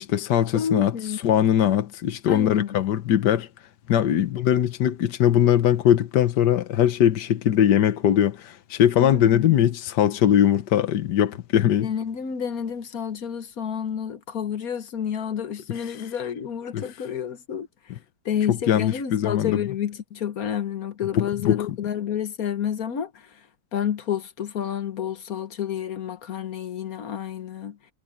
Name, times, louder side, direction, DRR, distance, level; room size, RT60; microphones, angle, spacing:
voice 1, 0.0-3.5 3.9-11.9 15.7-16.1 16.7-16.9 17.9-18.0 18.5-19.6 21.1-21.7, left 10 dB, 85° left, 1.6 m, -21 dB
voice 2, 0.5-1.2 2.3-2.7 9.0-9.7 11.8-17.7 18.2-23.1 23.7-27.8, left 8 dB, 60° left, 1.5 m, -29 dB
omnidirectional pair, 1.8 m